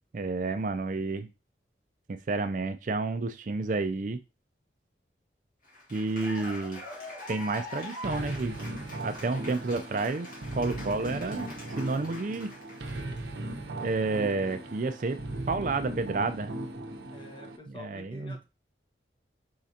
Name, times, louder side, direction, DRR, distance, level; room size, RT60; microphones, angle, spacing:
voice 1, 0.1-1.3 2.1-4.2 5.9-6.8 7.3-8.6 9.0-11.5 11.8-12.5 13.8-15.2 15.5-16.5 17.7-18.4, right 3 dB, 45° right, 9 dB, 0.4 m, -30 dB
Cheering / Applause, 5.6-13.2, left 2 dB, 50° left, 2.1 m, -44 dB
sound 1, 8.0-17.6, right 1 dB, 75° right, 0.7 m, -38 dB
voice 2, 17.1-18.4, left 1 dB, 25° left, 1 dB, 1.0 m, -47 dB
5.1 x 3.8 x 2.8 m, 0.27 s
head